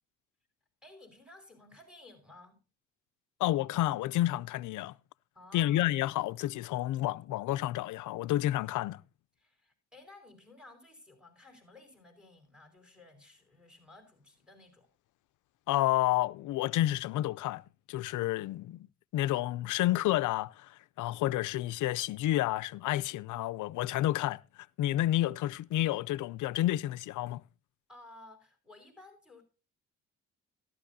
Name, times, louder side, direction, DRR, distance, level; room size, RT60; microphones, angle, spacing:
voice 1, 0.8-2.6 5.3-5.9 9.4-14.9 27.9-29.4, left 2 dB, 5° right, 4.8 m, -55 dB
voice 2, 3.4-4.9 5.5-9.0 15.7-17.6 17.9-18.9 19.1-24.4 24.8-27.4, left 15 dB, 80° left, 0.5 m, -30 dB
14.0 x 12.5 x 2.7 m
cardioid pair, 90°, 30 cm